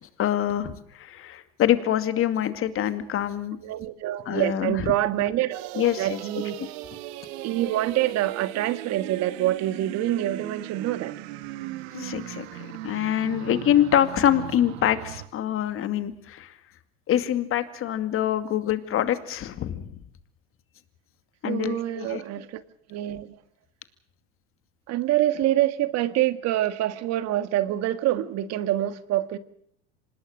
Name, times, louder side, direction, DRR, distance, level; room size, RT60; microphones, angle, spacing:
voice 1, 0.0-3.6 4.3-4.9 5.7-6.2 11.9-16.6 17.1-19.9 21.4-22.2, left 11 dB, 40° left, 10 dB, 2.4 m, -25 dB
voice 2, 3.6-6.6 7.4-11.1 21.4-22.6 22.9-23.4 24.9-29.4, right 14 dB, 50° right, 12 dB, 1.8 m, -26 dB
sound 1, 5.5-15.3, right 14 dB, 70° right, 1.7 m, -38 dB
26.0 x 20.0 x 6.6 m, 0.69 s
hypercardioid pair, 100°, 33 cm